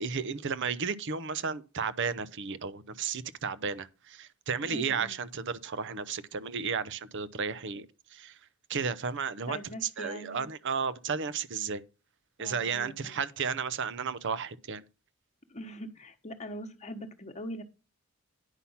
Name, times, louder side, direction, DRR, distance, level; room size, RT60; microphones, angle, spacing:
voice 1, 0.0-7.9 8.1-8.4 8.7-11.8 12.4-14.8, right 6 dB, 55° right, 0.7 m, -33 dB
voice 2, 4.6-5.2 9.5-10.5 12.4-13.2 15.5-17.6, equal, 30° left, 1.2 m, -42 dB
9.9 x 5.8 x 5.6 m
head